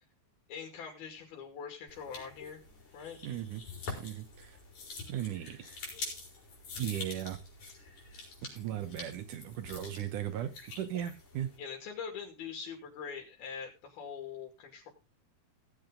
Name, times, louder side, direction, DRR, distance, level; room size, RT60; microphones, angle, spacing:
voice 1, 0.5-2.6 2.9-3.2 11.6-14.9, left 6 dB, 85° left, 3 dB, 4.5 m, -43 dB
sound 1, 1.9-11.6, left 3 dB, 55° left, 6.0 m, -46 dB
voice 2, 3.2-3.6 4.0-4.6 5.1-5.8 6.8-7.4 8.4-11.5, right 11 dB, 65° right, 9 dB, 2.3 m, -37 dB
17.5 x 7.9 x 3.8 m, 0.28 s
omnidirectional pair, 4.3 m